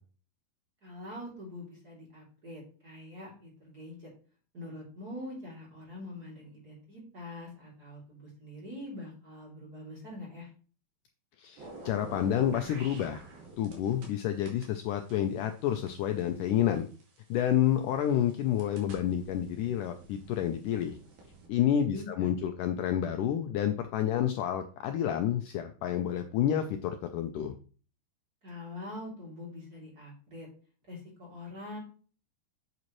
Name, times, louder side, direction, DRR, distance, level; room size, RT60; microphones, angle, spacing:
voice 1, 0.8-4.1 4.5-10.5 21.7-22.1 28.4-30.5 30.9-31.8, left 1 dB, 25° right, -3 dB, 3.2 m, -44 dB
voice 2, 11.4-13.2 13.6-16.9 17.3-21.0 21.5-27.5, left 10 dB, 80° left, 6 dB, 2.0 m, -29 dB
sound 1, 11.6-14.1 14.5-17.4 18.0-21.5, right 2 dB, 75° right, 4.1 m, -48 dB
8.4 x 7.8 x 3.1 m, 0.39 s
omnidirectional pair, 4.2 m